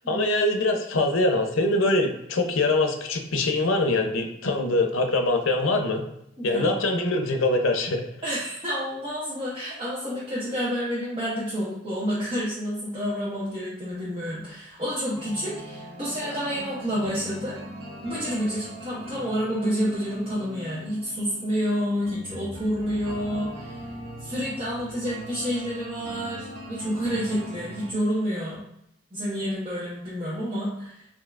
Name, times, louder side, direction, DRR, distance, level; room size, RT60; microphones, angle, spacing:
voice 1, 0.1-6.0 6.4-8.1, left 2 dB, 90° left, 4 dB, 0.6 m, -23 dB
voice 2, 6.4-6.8 8.2-17.6 18.0-23.8 24.2-28.6 29.1-31.0, equal, 25° right, -9 dB, 0.9 m, -29 dB
sound 1, 15.1-27.9, equal, 70° right, 1.3 m, -40 dB
5.5 x 2.7 x 2.4 m, 0.78 s
head